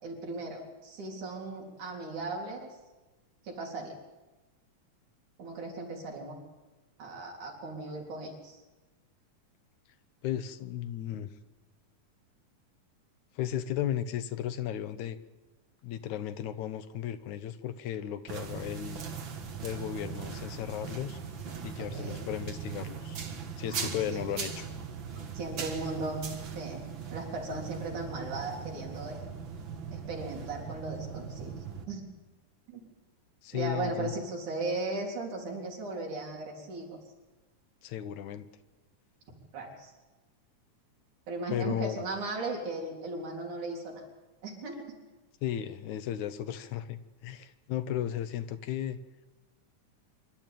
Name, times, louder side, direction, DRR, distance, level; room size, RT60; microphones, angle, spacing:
voice 1, 0.0-2.7 3.4-4.0 5.4-6.4 7.0-8.6 21.9-22.2 23.7-24.2 25.3-26.3 26.6-26.9 27.1-29.2 29.9-31.5 31.9-32.1 32.7-32.8 33.5-37.0 39.5-39.9 41.3-44.0 44.4-44.9, right 2 dB, 80° right, -1 dB, 5.2 m, -37 dB
voice 2, 10.2-11.3 13.4-15.2 15.8-19.0 19.6-21.2 21.6-23.2 23.6-24.7 33.4-34.1 37.8-38.5 41.5-42.0 45.4-49.0, left 10 dB, 75° left, 11 dB, 2.3 m, -35 dB
sound 1, 18.3-31.8, right 6 dB, 45° right, 2.1 m, -40 dB
25.5 x 12.5 x 9.2 m, 1.2 s
omnidirectional pair, 3.5 m